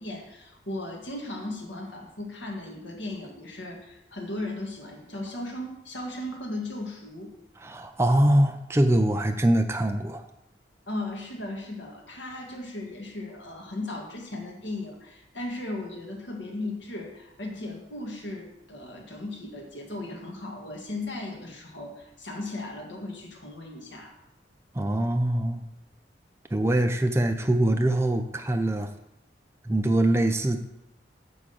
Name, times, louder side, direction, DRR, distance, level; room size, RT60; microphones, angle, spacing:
voice 1, 0.0-7.3 10.9-24.1, left 2 dB, 90° left, 0 dB, 1.9 m, -36 dB
voice 2, 7.6-10.2 24.7-25.7 26.5-28.9 29.7-30.6, right 1 dB, 15° right, 5 dB, 0.5 m, -23 dB
9.5 x 3.7 x 6.9 m, 0.84 s
head